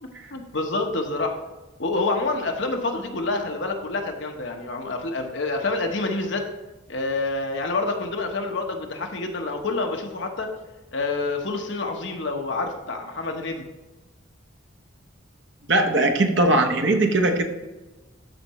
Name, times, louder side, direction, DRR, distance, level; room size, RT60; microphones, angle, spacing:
voice 1, 0.0-1.4 1.8-6.5 6.9-10.5 10.9-13.6, left 3 dB, 60° left, 3 dB, 1.0 m, -27 dB
voice 2, 15.7-17.4, right 2 dB, 60° right, 4 dB, 0.9 m, -20 dB
13.0 x 4.6 x 3.1 m, 1.1 s
head